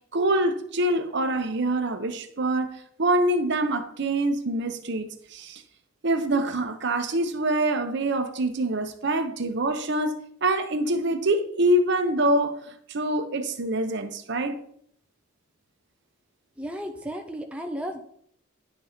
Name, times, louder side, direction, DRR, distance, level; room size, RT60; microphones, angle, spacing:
voice 1, 0.1-5.6 6.0-12.6 12.9-14.6, right 1 dB, 55° right, 8 dB, 0.8 m, -25 dB
voice 2, 16.6-18.0, equal, 5° right, 3 dB, 0.5 m, -34 dB
10.0 x 4.3 x 5.0 m, 0.67 s
head